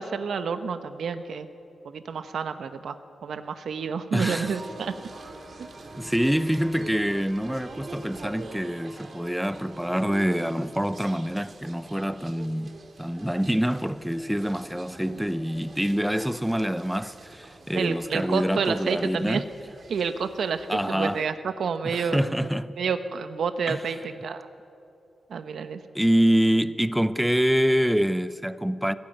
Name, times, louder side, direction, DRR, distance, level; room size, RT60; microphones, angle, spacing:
voice 1, 0.0-1.5 1.8-3.0 3.2-4.9 5.6-5.7 17.7-19.4 19.9-22.3 22.8-24.5 25.3-25.8, right 6 dB, 80° right, 1.1 m, -29 dB
voice 2, 4.1-4.5 6.0-19.5 20.7-21.2 21.8-22.8 23.7-23.8 25.9-29.0, equal, 5° right, 0.6 m, -26 dB
sound 1, 4.2-21.2, right 2 dB, 50° right, 2.6 m, -45 dB
21.0 x 17.0 x 9.1 m
wide cardioid pair, 105°, 0 cm